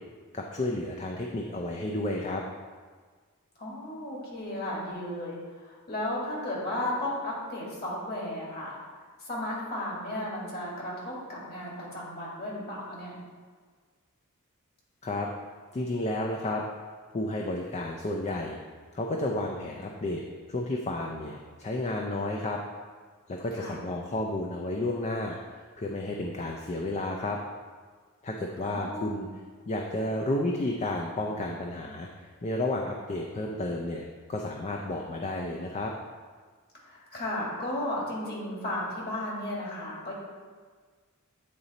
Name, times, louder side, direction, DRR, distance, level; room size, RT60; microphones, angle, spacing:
voice 1, 0.3-2.4 15.0-15.3 15.7-16.6 17.1-18.6 18.9-20.2 20.5-22.6 23.3-27.4 28.2-29.3 29.7-32.1 32.4-35.9, left 2 dB, 30° left, 1 dB, 0.4 m, -32 dB
voice 2, 3.6-8.8 9.2-13.1 23.5-23.8 28.6-29.2 36.8-40.1, left 1 dB, 45° left, -4 dB, 2.0 m, -34 dB
8.6 x 3.9 x 4.1 m, 1.5 s
head